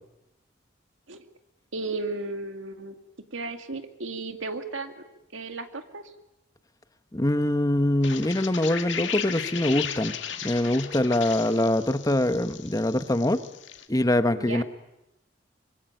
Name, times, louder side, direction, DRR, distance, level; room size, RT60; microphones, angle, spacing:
voice 1, 1.7-3.0 3.3-5.0 5.3-6.1 14.4-14.6, right 3 dB, 90° right, 7 dB, 2.4 m, -34 dB
voice 2, 7.1-10.2 10.4-13.4 13.9-14.6, left 1 dB, 20° left, 11 dB, 1.1 m, -24 dB
sound 1, 8.0-13.9, left 8 dB, 70° left, 2.2 m, -36 dB
25.5 x 24.5 x 9.1 m, 0.89 s
head